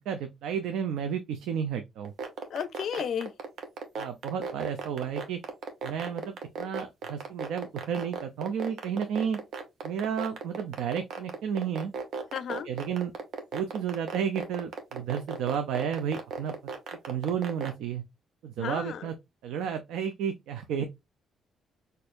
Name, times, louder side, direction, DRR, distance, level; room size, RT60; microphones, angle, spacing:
voice 1, 0.1-2.1 4.0-5.4 5.8-9.4 9.8-11.9 12.6-13.1 13.5-16.5 17.1-18.0 18.4-19.1 19.4-20.8, right 8 dB, 85° right, 0.5 m, -32 dB
sound 1, 2.0-17.7, right 5 dB, 70° right, 0.9 m, -35 dB
voice 2, 2.5-3.3 12.3-12.7 18.6-19.0, left 8 dB, 65° left, 0.4 m, -33 dB
4.3 x 2.6 x 2.5 m
cardioid pair, 90°, 0 cm